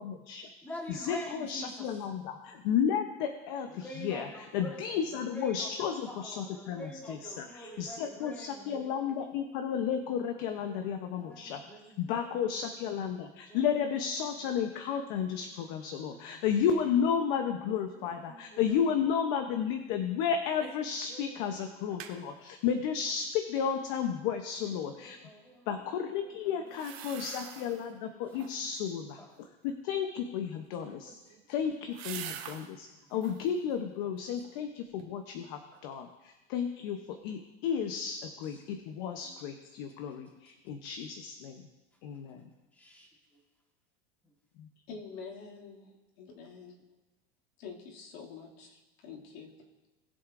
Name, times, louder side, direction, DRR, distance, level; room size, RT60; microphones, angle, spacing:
voice 1, 0.0-0.5 0.9-11.6 12.0-25.2 25.7-31.2 31.5-41.7 42.0-42.5 44.6-44.7, left 7 dB, 45° left, 6 dB, 0.8 m, -33 dB
voice 2, 0.6-1.9 3.7-8.8 10.7-12.4 13.3-13.6 15.8-16.4 17.9-18.6 21.1-22.1 24.7-25.9 26.2-27.3 28.4-28.5 28.8-29.3 30.8-31.0 32.9-33.0 39.2-39.3 40.2-40.3 40.7-40.8 42.3-42.4 42.7-43.4 44.2-44.3, equal, 5° left, -1 dB, 1.4 m, -48 dB
sound 1, 20.6-20.9 21.2-21.3 21.7-22.2 26.7-27.9 28.3-28.8 30.7-32.7 33.1-33.5 34.0-34.7 35.0-35.1, right 10 dB, 75° right, 1.6 m, -45 dB
voice 3, 44.9-45.9 46.2-46.7 47.6-49.6, left 5 dB, 70° left, -2 dB, 2.4 m, -46 dB
20.0 x 7.7 x 2.5 m, 1.1 s
supercardioid pair, 170°, 32 cm